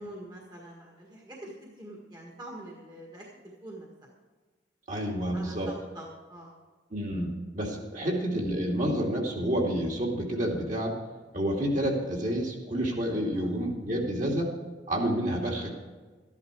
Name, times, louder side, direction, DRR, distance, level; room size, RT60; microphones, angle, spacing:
voice 1, 0.0-3.2 3.6-3.9 5.3-6.6 8.0-8.1 13.3-13.6, right 1 dB, 20° right, -3 dB, 1.7 m, -45 dB
voice 2, 4.9-5.7 6.9-10.9 11.3-14.6 14.9-15.7, equal, 40° right, 0 dB, 2.4 m, -29 dB
13.5 x 10.5 x 4.7 m, 1.4 s
head